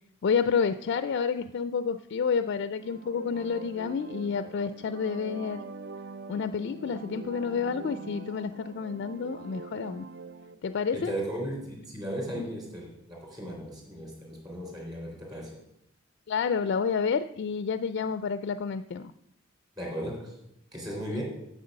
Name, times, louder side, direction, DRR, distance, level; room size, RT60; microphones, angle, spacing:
voice 1, 0.2-5.6 6.3-10.1 10.6-11.1 16.3-19.1 21.1-21.2, left 6 dB, 55° left, 12 dB, 0.3 m, -29 dB
sound 1, 2.6-10.5, right 3 dB, 55° right, 0.6 m, -43 dB
voice 2, 10.9-15.6 19.8-20.4 20.7-21.2, right 1 dB, 20° right, -1 dB, 3.1 m, -36 dB
7.9 x 7.4 x 6.4 m, 0.80 s
head